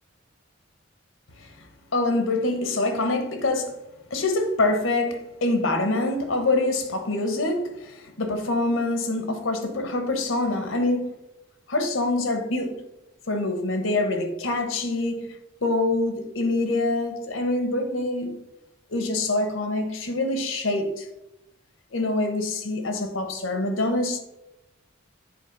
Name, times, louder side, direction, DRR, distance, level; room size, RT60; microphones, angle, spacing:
voice 1, 1.9-3.8 4.1-11.1 11.7-12.8 13.3-15.3 15.6-18.4 18.9-21.1 21.9-24.2, left 2 dB, 85° left, 1.1 m, -25 dB
8.4 x 3.8 x 5.3 m
head